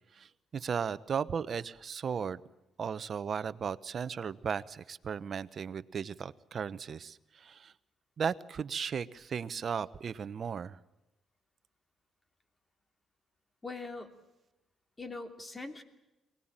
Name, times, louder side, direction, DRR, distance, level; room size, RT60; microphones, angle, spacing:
voice 1, 0.1-2.4 2.8-7.7 8.2-10.8, right 6 dB, 50° right, 15 dB, 0.9 m, -36 dB
voice 2, 13.6-14.1 15.0-15.8, left 3 dB, 20° left, 8 dB, 2.8 m, -41 dB
23.5 x 19.5 x 9.0 m, 0.96 s
cardioid pair, 90°, 0 cm